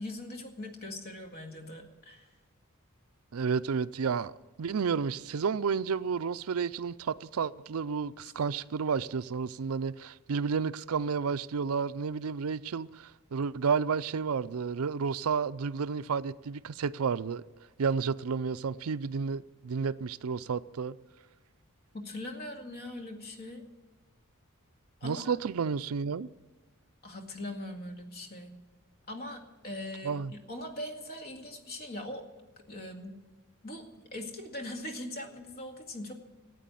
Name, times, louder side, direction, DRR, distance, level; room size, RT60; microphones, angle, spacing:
voice 1, 0.0-2.3 21.9-23.6 25.0-25.3 27.0-28.6 29.1-32.3 32.7-33.2 33.6-36.1, left 1 dB, 45° left, 2.2 m, -41 dB
voice 2, 3.3-4.3 4.6-17.4 17.8-20.9 25.0-26.3 30.0-30.3, right 5 dB, 75° right, 0.5 m, -31 dB
14.5 x 9.1 x 9.1 m
head